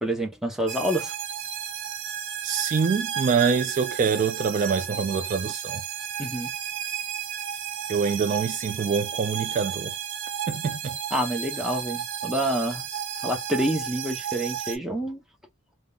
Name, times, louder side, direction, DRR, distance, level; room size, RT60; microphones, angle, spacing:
voice 1, 0.0-1.1 6.2-6.5 11.1-12.8 13.2-15.2, right 1 dB, ahead, 0.7 m, -27 dB
sound 1, 0.7-14.8, right 9 dB, 65° right, 0.7 m, -33 dB
voice 2, 2.4-5.8 7.9-9.9 10.5-11.0, right 5 dB, 40° right, 0.3 m, -25 dB
3.5 x 2.1 x 2.3 m
head